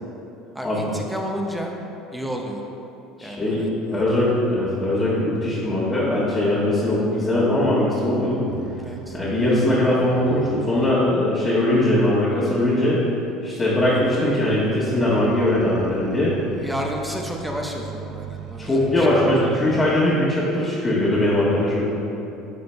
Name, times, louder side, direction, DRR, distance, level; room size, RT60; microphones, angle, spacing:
voice 1, 0.5-1.7 2.1-2.6 3.2-4.1 8.8-9.2 13.9-14.1 16.6-19.2, equal, 5° right, 0 dB, 0.9 m, -32 dB
voice 2, 3.2-8.4 9.1-13.0 13.4-16.3 18.6-21.8, left 1 dB, 25° left, -9 dB, 1.5 m, -20 dB
sound 1, 8.5-11.1 13.8-20.0, right 6 dB, 50° right, 0.4 m, -38 dB
10.5 x 3.8 x 3.3 m, 2.8 s
hypercardioid pair, 80°, 0 cm